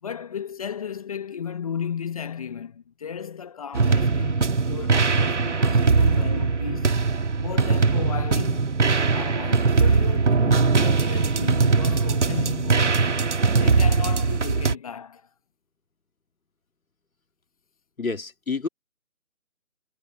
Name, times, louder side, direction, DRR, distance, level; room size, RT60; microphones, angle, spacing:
voice 1, 0.0-7.1 7.4-8.8 9.1-13.2 13.5-15.3, left 7 dB, 25° left, 1.6 m, -35 dB
sound 1, 3.7-14.7, right 4 dB, 55° right, 2.0 m, -21 dB
voice 2, 18.0-18.7, left 4 dB, 70° left, 2.3 m, -28 dB
figure-of-eight pair, 155°, 43 cm